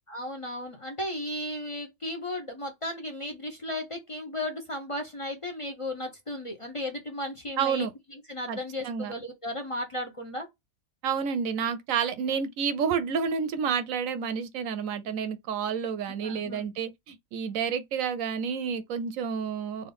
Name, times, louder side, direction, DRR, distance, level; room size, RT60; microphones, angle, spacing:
voice 1, 0.1-10.5 16.2-16.6, left 1 dB, 45° left, 0.4 m, -35 dB
voice 2, 7.6-7.9 8.5-8.6 8.8-9.1 11.0-19.9, right 7 dB, 70° right, 0.9 m, -29 dB
3.7 x 2.5 x 3.4 m
omnidirectional pair, 1.6 m